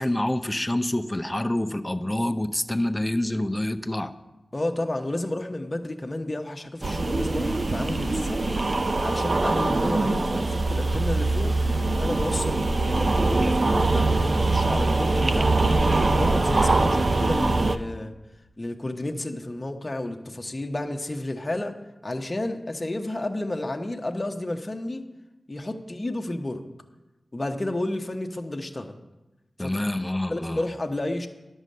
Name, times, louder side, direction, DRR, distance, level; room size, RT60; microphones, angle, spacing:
voice 1, 0.0-4.1 29.6-30.6, left 1 dB, 15° left, 7 dB, 0.7 m, -27 dB
voice 2, 4.5-8.5 9.0-11.5 12.0-15.8 16.1-18.1 18.6-21.8 22.0-25.0 25.5-26.6 27.3-28.9 29.6-29.8 30.3-31.3, left 1 dB, 35° left, 3 dB, 1.0 m, -31 dB
sound 1, 6.8-17.8, right 2 dB, 50° right, 0.5 m, -23 dB
11.0 x 6.3 x 6.7 m, 1.0 s
cardioid pair, 45°, 0 cm